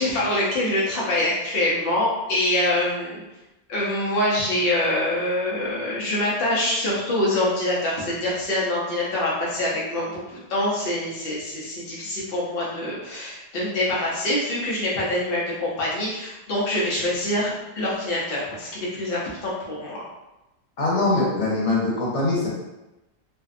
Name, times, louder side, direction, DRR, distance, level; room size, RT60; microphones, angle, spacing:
voice 1, 0.0-3.2 3.7-20.0, left 1 dB, 60° left, -6 dB, 0.9 m, -25 dB
voice 2, 20.8-22.5, left 2 dB, 85° left, -6 dB, 1.2 m, -22 dB
2.6 x 2.2 x 2.4 m, 0.97 s
omnidirectional pair, 1.2 m